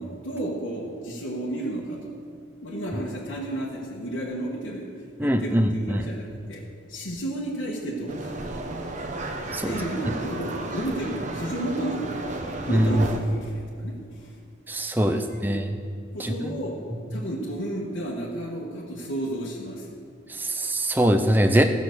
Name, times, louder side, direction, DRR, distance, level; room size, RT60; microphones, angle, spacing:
voice 1, 0.0-2.1 2.6-4.9 5.2-8.3 9.6-14.4 15.1-15.6 16.1-16.8 17.1-20.0, right 1 dB, 70° left, -4 dB, 1.5 m, -32 dB
voice 2, 5.2-6.0 9.5-9.7 12.6-12.9 14.7-15.7 16.2-16.5 20.3-21.6, right 1 dB, 10° right, 6 dB, 0.5 m, -23 dB
sound 1, 8.1-13.2, right 2 dB, 35° right, 0.9 m, -33 dB
15.5 x 6.1 x 6.6 m, 2.2 s
head